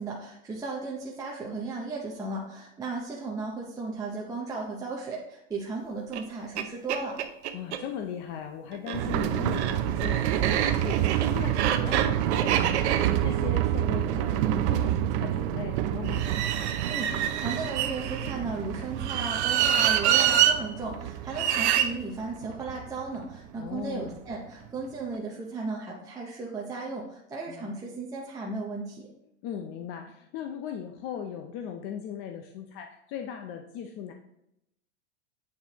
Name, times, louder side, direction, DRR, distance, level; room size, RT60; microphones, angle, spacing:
voice 1, 0.0-7.2 16.9-29.1, right 3 dB, 10° right, -3 dB, 0.6 m, -35 dB
sound 1, 6.1-6.2 6.6-6.7 6.9-7.8 8.7-14.9 16.1-18.3 19.0-20.6 21.3-21.9, right 10 dB, 85° right, 0.7 m, -27 dB
voice 2, 7.5-16.3 23.6-24.2 27.5-27.8 29.4-34.1, left 8 dB, 40° left, 4 dB, 0.5 m, -38 dB
sound 2, 8.9-24.4 24.7-24.8 25.1-25.2, right 12 dB, 55° right, 0.5 m, -29 dB
8.2 x 4.4 x 2.9 m, 0.81 s
supercardioid pair, 140°, 33 cm